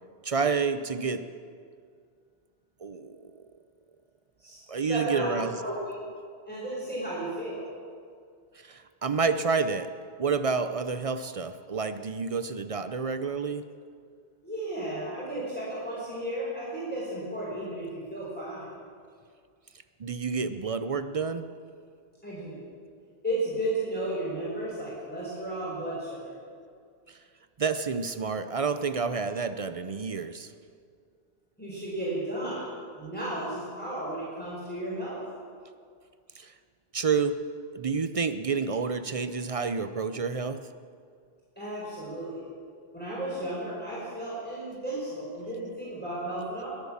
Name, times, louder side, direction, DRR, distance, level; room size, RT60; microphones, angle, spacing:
voice 1, 0.2-1.3 2.8-3.4 4.7-5.6 8.6-9.9 10.2-13.6 20.0-21.5 27.1-27.2 27.6-30.5 36.4-36.5 36.9-37.4 37.7-40.6, right 5 dB, 45° right, 11 dB, 0.5 m, -29 dB
voice 2, 4.4-5.8 6.5-7.6 14.4-18.7 22.2-22.6 23.2-26.3 31.6-32.6 33.0-35.2 41.6-42.4 42.9-46.7, right 1 dB, 10° left, -8 dB, 4.5 m, -34 dB
22.0 x 8.2 x 7.2 m, 2.2 s
omnidirectional pair, 1.1 m